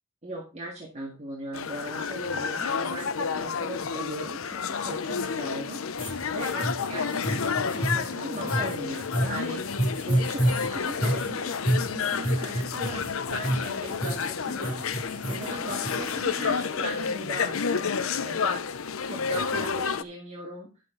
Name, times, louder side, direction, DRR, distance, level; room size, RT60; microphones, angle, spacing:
voice 1, 0.2-9.6 10.1-14.8 15.2-18.6 19.0-20.7, right 1 dB, 35° right, -2 dB, 2.1 m, -38 dB
sound 1, 1.5-20.0, left 6 dB, 90° left, 0.7 m, -30 dB
sound 2, 6.0-16.2, right 1 dB, 25° left, 5.6 m, -29 dB
11.5 x 7.5 x 3.9 m, 0.29 s
head